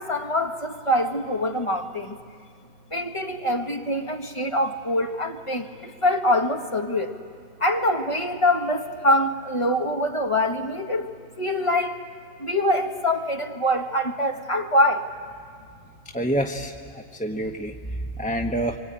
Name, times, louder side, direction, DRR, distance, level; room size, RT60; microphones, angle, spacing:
voice 1, 0.0-2.2 2.9-7.2 7.6-12.0 12.4-15.1, left 1 dB, 25° left, 4 dB, 1.4 m, -24 dB
voice 2, 16.1-18.8, right 1 dB, 5° left, 2 dB, 0.8 m, -28 dB
26.5 x 24.5 x 8.9 m, 2.2 s
omnidirectional pair, 1.5 m